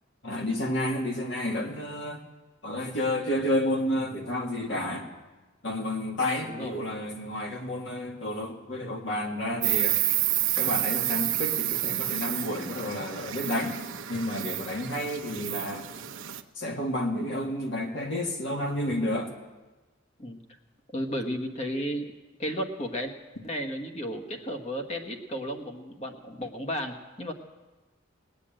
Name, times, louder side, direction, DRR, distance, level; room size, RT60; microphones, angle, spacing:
voice 1, 0.2-2.2 2.6-5.1 5.6-10.0 10.6-13.8 14.1-15.9 16.6-19.3, left 1 dB, 60° left, 1 dB, 1.8 m, -30 dB
voice 2, 6.4-6.8 14.8-15.1 20.2-20.4 20.9-22.1 22.4-23.1 23.4-27.3, equal, 30° left, 5 dB, 1.3 m, -33 dB
Insect, 9.6-16.4, right 14 dB, 75° right, 0.9 m, -29 dB
19.5 x 8.3 x 8.8 m, 1.2 s
head